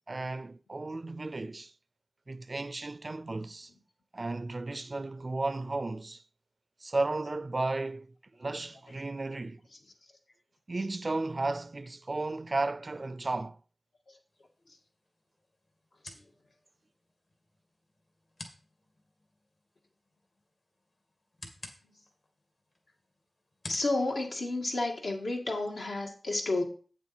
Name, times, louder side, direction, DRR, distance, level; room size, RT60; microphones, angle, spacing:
voice 1, 0.1-1.7 2.3-3.7 4.1-6.2 6.8-9.6 10.7-13.6, right 2 dB, 45° right, 0.4 m, -34 dB
sound 1, 14.3-25.2, left 2 dB, 60° left, 2.1 m, -53 dB
voice 2, 23.6-26.6, left 2 dB, 80° left, 2.0 m, -31 dB
8.4 x 7.3 x 4.4 m
wide cardioid pair, 70°, 0 cm